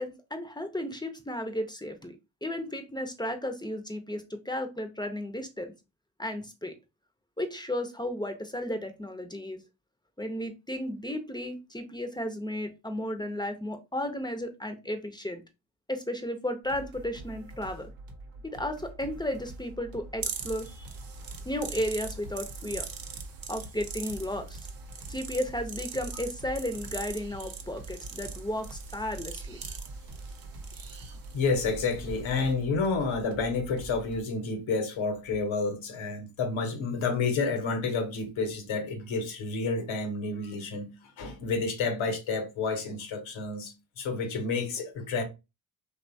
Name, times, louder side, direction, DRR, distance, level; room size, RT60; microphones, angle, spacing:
voice 1, 0.0-5.7 6.2-6.8 7.4-9.6 10.2-15.4 15.9-17.9 18.5-20.9 21.4-22.9 23.5-24.7 25.1-29.6, left 1 dB, 10° left, 0.6 m, -34 dB
sound 1, 16.6-34.2, right 2 dB, 80° right, 0.8 m, -46 dB
sound 2, 20.2-32.5, right 5 dB, 45° right, 0.7 m, -41 dB
voice 2, 31.3-45.2, left 4 dB, 70° left, 0.9 m, -30 dB
2.8 x 2.3 x 2.6 m
hypercardioid pair, 40°, 50 cm